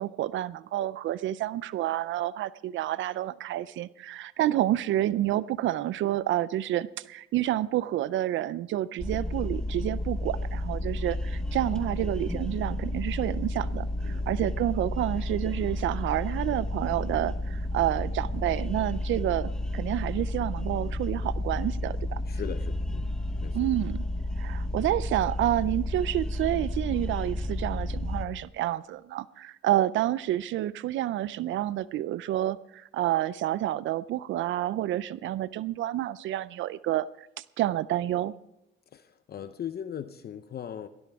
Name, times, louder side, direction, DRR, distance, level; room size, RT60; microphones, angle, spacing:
voice 1, 0.0-22.2 23.5-24.0 24.4-37.3 37.6-38.3, right 13 dB, 75° right, 18 dB, 0.4 m, -29 dB
sound 1, 9.0-28.2, left 1 dB, 5° left, 1.1 m, -31 dB
voice 2, 22.3-23.1 23.4-23.6 38.9-40.9, left 9 dB, 50° left, 11 dB, 0.7 m, -39 dB
19.0 x 15.5 x 3.5 m, 0.83 s
cardioid pair, 90°, 20 cm